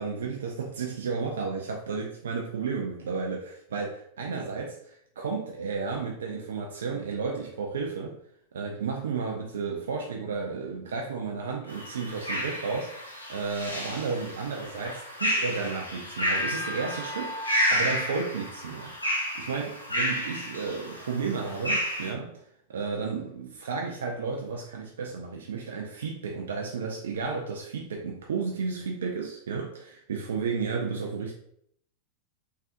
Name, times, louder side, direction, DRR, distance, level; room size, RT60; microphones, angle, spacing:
voice 1, 0.0-8.2 8.5-17.3 17.7-18.9 19.3-22.4 22.7-31.3, right 5 dB, 65° right, 1 dB, 0.4 m, -33 dB
sound 1, 11.7-22.1, equal, 85° left, 0.7 m, -31 dB
3.6 x 3.3 x 2.5 m, 0.69 s
figure-of-eight pair, 90°, 0 cm